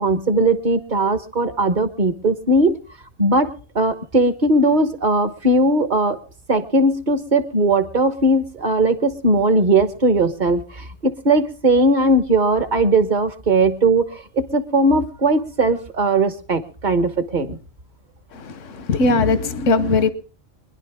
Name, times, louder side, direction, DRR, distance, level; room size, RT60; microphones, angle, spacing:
voice 1, 0.0-2.8 3.2-6.2 6.5-17.6, right 2 dB, 40° right, 1.4 m, -19 dB
voice 2, 18.3-20.1, left 3 dB, 85° left, 1.4 m, -19 dB
25.0 x 11.0 x 3.6 m
omnidirectional pair, 1.2 m